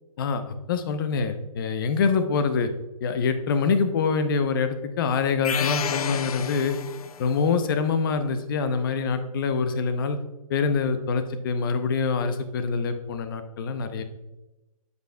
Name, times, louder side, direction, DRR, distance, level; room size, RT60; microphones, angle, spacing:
voice 1, 0.2-2.7 3.0-6.8 7.2-10.2 10.5-14.0, left 5 dB, 35° left, 9 dB, 0.7 m, -25 dB
sound 1, 5.4-7.3, left 8 dB, 80° left, 0.5 m, -30 dB
8.0 x 7.9 x 2.2 m, 1.0 s
hypercardioid pair, 155°, 19 cm